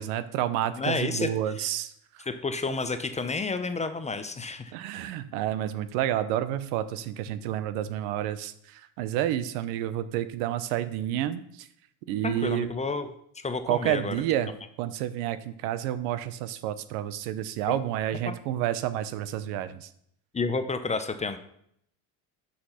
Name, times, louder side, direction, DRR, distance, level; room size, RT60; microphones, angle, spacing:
voice 1, 0.0-2.2 4.7-11.7 12.1-12.7 13.7-14.5 14.8-19.9, right 12 dB, 85° right, 13 dB, 0.8 m, -30 dB
voice 2, 0.8-1.3 1.6-1.7 2.3-4.7 12.2-13.1 13.4-14.1 18.2-18.3 20.3-21.4, left 4 dB, 15° left, 9 dB, 0.5 m, -30 dB
6.5 x 5.9 x 5.6 m, 0.69 s
supercardioid pair, 115°, 45 cm